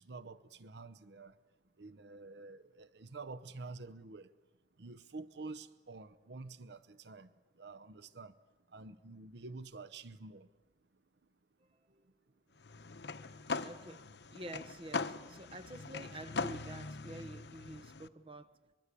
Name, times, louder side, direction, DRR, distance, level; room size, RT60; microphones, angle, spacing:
voice 1, 0.0-1.3 1.8-4.3 4.8-7.3 7.6-8.3 8.7-10.5, right 3 dB, 70° right, 0.8 m, -48 dB
sound 1, 12.6-18.1, left 4 dB, 70° left, 0.9 m, -41 dB
voice 2, 13.6-14.0 14.3-18.5, right 1 dB, 30° right, 1.0 m, -48 dB
24.0 x 22.0 x 8.3 m
head